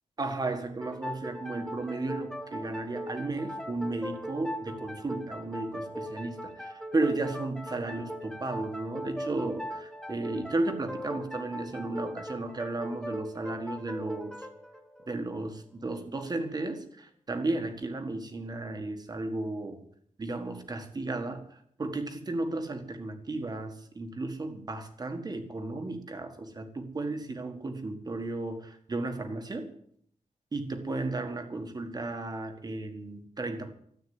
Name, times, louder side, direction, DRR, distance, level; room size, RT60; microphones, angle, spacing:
voice 1, 0.2-14.3 15.1-19.8 20.2-29.7 30.5-33.7, right 2 dB, 30° right, 7 dB, 1.7 m, -34 dB
sound 1, 0.8-16.1, equal, 5° left, 1.1 m, -40 dB
13.5 x 8.7 x 9.4 m, 0.66 s
wide cardioid pair, 175°, 13 cm